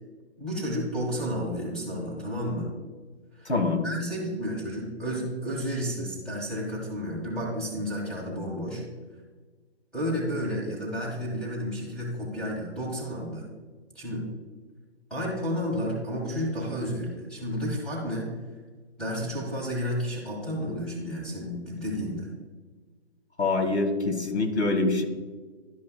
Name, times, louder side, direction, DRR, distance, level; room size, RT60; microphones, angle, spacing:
voice 1, 0.4-2.7 3.3-3.5 3.8-8.8 9.9-13.5 14.0-14.2 15.1-18.3 19.0-22.3, equal, ahead, -5 dB, 1.6 m, -31 dB
voice 2, 3.4-3.8 23.4-25.0, left 3 dB, 80° left, 5 dB, 1.5 m, -25 dB
11.5 x 5.4 x 2.2 m, 1.4 s
figure-of-eight pair, 145°, 33 cm